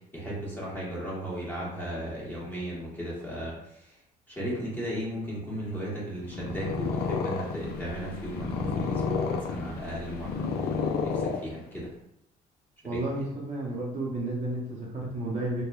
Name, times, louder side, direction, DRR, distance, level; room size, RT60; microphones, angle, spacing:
voice 1, 0.1-4.0 4.3-10.7 11.0-11.9 12.9-13.0, equal, 10° left, -6 dB, 1.1 m, -36 dB
Purr, 6.2-11.9, left 5 dB, 70° left, 0.4 m, -31 dB
voice 2, 12.8-15.6, right 2 dB, 45° right, -4 dB, 0.7 m, -32 dB
2.9 x 2.2 x 2.2 m, 0.79 s
cardioid pair, 110°, 17 cm